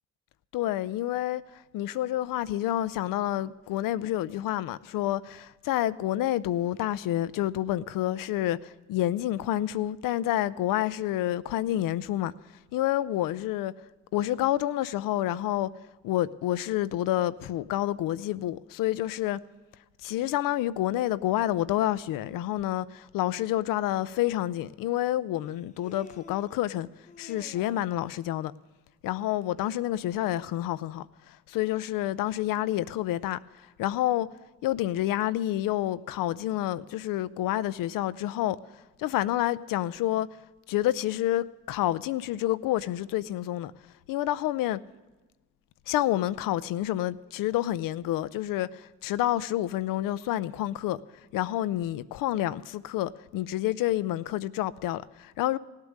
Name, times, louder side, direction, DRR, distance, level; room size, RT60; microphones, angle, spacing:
voice 1, 0.5-1.4 1.7-12.3 12.7-13.7 14.1-15.7 16.0-19.4 20.0-26.9 27.2-28.5 29.0-33.4 33.8-34.3 34.6-38.6 39.0-40.3 40.7-43.7 44.1-44.8 45.9-51.0 51.3-55.6, left 14 dB, 85° left, 0.5 m, -28 dB
Human voice, 24.0-24.1 25.4-26.6 27.1-28.1, left 4 dB, 20° left, 0.9 m, -50 dB
17.0 x 8.2 x 6.5 m
supercardioid pair, 60°, 33 cm